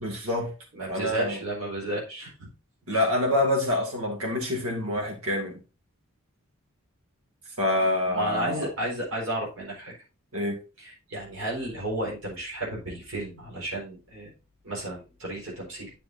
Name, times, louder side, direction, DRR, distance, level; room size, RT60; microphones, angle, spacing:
voice 1, 0.0-0.5 0.9-1.4 2.9-5.6 7.6-8.7 10.3-10.6, left 1 dB, 90° right, 3 dB, 2.3 m, -26 dB
voice 2, 0.7-2.3 2.9-3.0 8.1-9.9 10.8-14.3 14.6-15.9, right 1 dB, 70° right, -3 dB, 4.3 m, -33 dB
9.9 x 6.8 x 2.6 m, 0.31 s
head